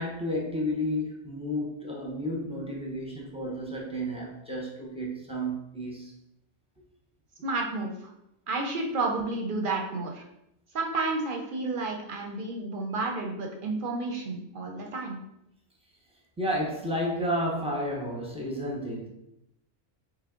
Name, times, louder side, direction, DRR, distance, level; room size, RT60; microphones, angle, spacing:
voice 1, 0.0-6.1 16.4-19.1, equal, 5° right, -3 dB, 0.5 m, -31 dB
voice 2, 7.4-7.9 8.5-10.2 10.7-15.2, right 3 dB, 60° right, 1 dB, 0.6 m, -31 dB
3.3 x 3.1 x 3.6 m, 0.83 s
omnidirectional pair, 1.3 m